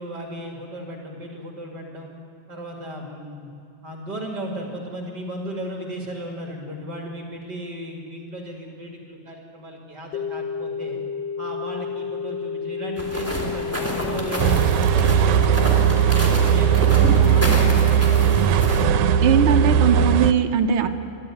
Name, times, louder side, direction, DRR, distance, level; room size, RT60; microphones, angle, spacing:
voice 1, 0.0-2.1 2.5-3.5 3.8-11.0 11.4-15.7 16.0-18.3, right 1 dB, 35° right, 0 dB, 2.6 m, -35 dB
sound 1, 10.1-20.1, left 6 dB, 75° left, 1.5 m, -30 dB
sound 2, 13.0-18.8, equal, 5° left, 3.0 m, -28 dB
sound 3, 14.4-20.3, right 10 dB, 80° right, 2.1 m, -18 dB
voice 2, 19.2-20.9, right 8 dB, 60° right, 6 dB, 1.4 m, -20 dB
24.5 x 13.5 x 9.3 m, 2.5 s
omnidirectional pair, 3.4 m